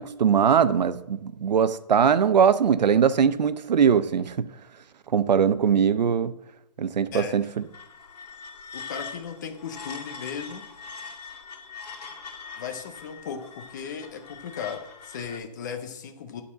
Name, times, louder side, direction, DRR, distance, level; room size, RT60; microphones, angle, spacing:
voice 1, 0.0-4.5 5.1-6.3 6.8-7.5, right 7 dB, 80° right, 15 dB, 0.7 m, -21 dB
sound 1, 7.6-15.4, left 5 dB, 75° left, 2.1 m, -42 dB
voice 2, 8.7-10.6 12.6-16.4, left 7 dB, 25° left, 6 dB, 0.8 m, -36 dB
9.9 x 4.2 x 7.0 m, 0.85 s
hypercardioid pair, 170°, 21 cm